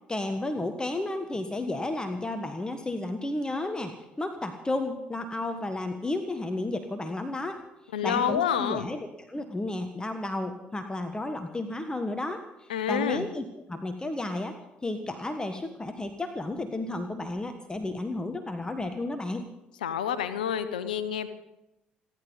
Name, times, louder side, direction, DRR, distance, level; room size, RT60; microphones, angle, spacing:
voice 1, 0.1-7.6 8.0-19.5, left 2 dB, 15° left, 7 dB, 1.4 m, -32 dB
voice 2, 7.9-8.9 12.7-13.3 19.8-21.3, left 8 dB, 80° left, 13 dB, 1.0 m, -28 dB
30.0 x 11.5 x 4.0 m, 0.91 s
figure-of-eight pair, 50°, 5 cm